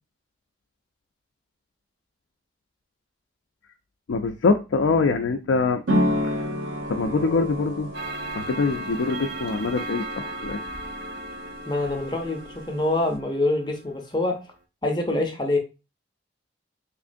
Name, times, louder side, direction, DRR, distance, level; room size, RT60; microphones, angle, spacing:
voice 1, 4.1-5.8 6.2-6.5 6.9-7.9 8.3-10.6, left 4 dB, 80° left, 0.4 m, -24 dB
sound 1, 5.9-13.2, equal, 85° right, 0.8 m, -31 dB
Clock, 7.9-13.9, right 2 dB, 55° right, 0.5 m, -37 dB
voice 2, 11.7-14.4 14.8-15.6, left 2 dB, 25° left, 0.6 m, -25 dB
3.5 x 3.1 x 2.5 m
head